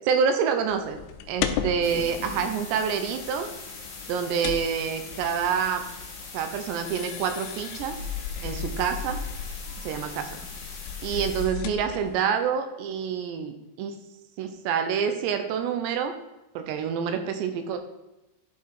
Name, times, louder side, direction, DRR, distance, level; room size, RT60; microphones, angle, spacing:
voice 1, 0.1-1.0 1.3-3.5 4.1-5.8 6.3-8.0 8.4-9.2 9.8-10.3 11.0-14.0 14.4-16.1 16.6-17.8, right 7 dB, 80° right, 7 dB, 2.7 m, -27 dB
sound 1, 0.7-12.1, left 8 dB, 85° left, 2.4 m, -36 dB
sound 2, 1.8-11.4, left 3 dB, 65° left, 1.2 m, -42 dB
11.0 x 4.7 x 4.6 m, 0.98 s
omnidirectional pair, 5.3 m